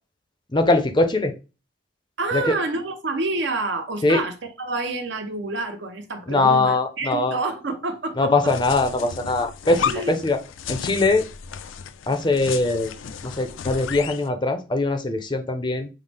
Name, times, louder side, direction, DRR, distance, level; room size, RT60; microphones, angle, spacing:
voice 1, 0.5-1.3 2.3-2.6 4.0-4.2 6.3-7.4 8.2-10.4 10.7-11.3 12.1-12.9 13.2-15.9, left 2 dB, 25° left, 0.5 m, -21 dB
voice 2, 2.2-8.3 9.9-10.1, right 3 dB, 65° right, 0.7 m, -28 dB
sound 1, 8.5-14.3, left 7 dB, 80° left, 0.4 m, -33 dB
5.5 x 2.0 x 3.3 m
head